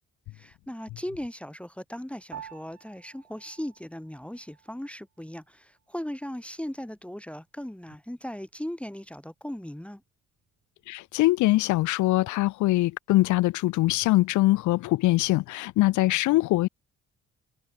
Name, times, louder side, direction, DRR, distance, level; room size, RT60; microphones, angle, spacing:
voice 1, 0.3-10.0, equal, 5° left, 1.8 m, -38 dB
Piano, 2.3-11.9, right 9 dB, 60° right, 5.4 m, -53 dB
voice 2, 10.9-16.7, left 18 dB, 75° left, 0.5 m, -23 dB
cardioid pair, 90°, 30 cm